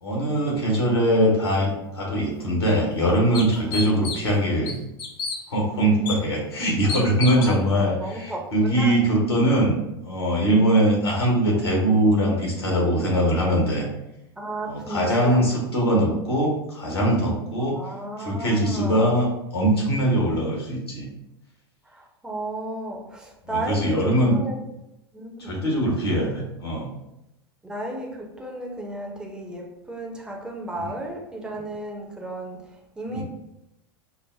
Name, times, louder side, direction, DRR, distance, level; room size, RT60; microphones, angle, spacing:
voice 1, 0.0-4.8 5.5-9.8 10.0-13.9 14.7-17.8 18.2-21.1 23.5-24.4 25.4-26.9 33.1-33.2, right 1 dB, 75° left, -2 dB, 1.3 m, -22 dB
sound 1, 2.3-2.4 2.9-3.0 3.3-4.3 4.7-5.4 6.1-6.2 6.9-7.6, left 4 dB, 35° left, 0.6 m, -30 dB
voice 2, 8.0-9.0 10.9-11.1 14.4-15.4 17.6-19.1 21.9-24.6 25.1-25.7 27.6-32.6 33.0-33.2, right 1 dB, 5° right, -1 dB, 0.7 m, -34 dB
5.6 x 2.0 x 2.7 m, 0.87 s
figure-of-eight pair, 90°, 13 cm